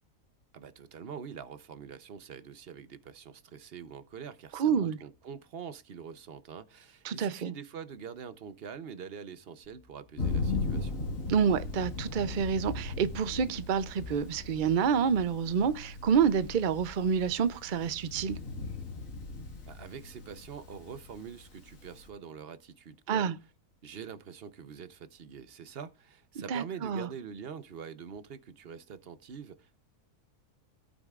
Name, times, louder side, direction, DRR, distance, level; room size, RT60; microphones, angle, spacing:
voice 1, 0.5-11.0 19.7-23.3 23.8-29.8, right 7 dB, 50° right, 0.8 m, -45 dB
voice 2, 4.5-5.0 7.0-7.5 11.3-18.4 23.1-23.3 26.5-27.1, right 7 dB, 70° right, 0.4 m, -28 dB
sound 1, 9.6-21.1, left 4 dB, 75° left, 2.5 m, -55 dB
Thunder, 10.2-22.1, left 3 dB, 55° left, 2.3 m, -38 dB
17.5 x 8.9 x 2.4 m
omnidirectional pair, 1.6 m